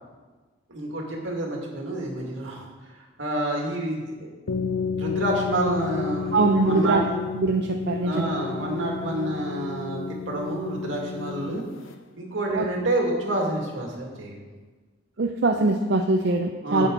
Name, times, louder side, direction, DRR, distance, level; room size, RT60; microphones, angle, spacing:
voice 1, 0.7-2.7 3.2-4.7 4.9-6.4 6.6-7.0 8.0-10.0 10.3-11.6 12.2-14.4 16.6-16.9, right 1 dB, 75° right, -1 dB, 2.2 m, -28 dB
sound 1, 4.5-11.9, left 5 dB, 90° left, 0.5 m, -31 dB
voice 2, 6.3-7.0 7.3-8.3 12.5-12.7 15.2-16.9, right 3 dB, 60° right, 3 dB, 0.6 m, -22 dB
10.5 x 8.2 x 3.9 m, 1.3 s
head